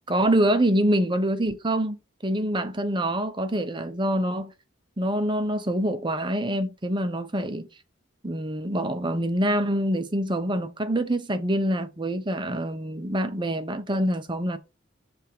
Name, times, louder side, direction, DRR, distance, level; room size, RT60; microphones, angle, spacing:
voice 1, 0.1-4.5 5.0-7.7 8.2-14.6, right 1 dB, 25° right, 0.8 m, -25 dB
7.1 x 3.5 x 4.6 m
head